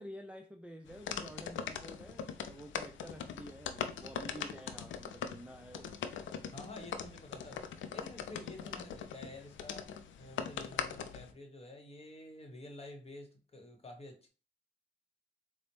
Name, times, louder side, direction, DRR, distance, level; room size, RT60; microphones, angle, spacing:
voice 1, 0.0-6.0, right 1 dB, 5° right, 0.3 m, -50 dB
sound 1, 0.9-11.3, left 7 dB, 85° left, 0.4 m, -41 dB
voice 2, 6.5-7.7 7.9-9.9 10.2-14.3, left 2 dB, 30° left, 1.1 m, -50 dB
4.1 x 2.0 x 3.1 m
cardioid pair, 60°, 19 cm